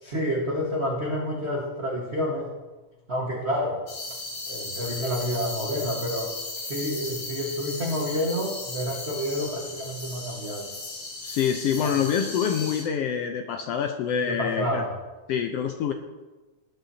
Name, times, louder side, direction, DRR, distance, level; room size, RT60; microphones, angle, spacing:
voice 1, 0.0-2.5 3.1-3.8 4.4-6.3 6.6-10.7 11.8-12.0 14.2-14.9, equal, 35° right, -3 dB, 1.1 m, -29 dB
sound 1, 3.9-12.8, left 2 dB, 45° left, 2.6 m, -36 dB
voice 2, 11.2-14.8 15.3-15.9, left 8 dB, 75° left, 5 dB, 1.5 m, -26 dB
20.0 x 10.0 x 2.8 m, 1.2 s
omnidirectional pair, 3.4 m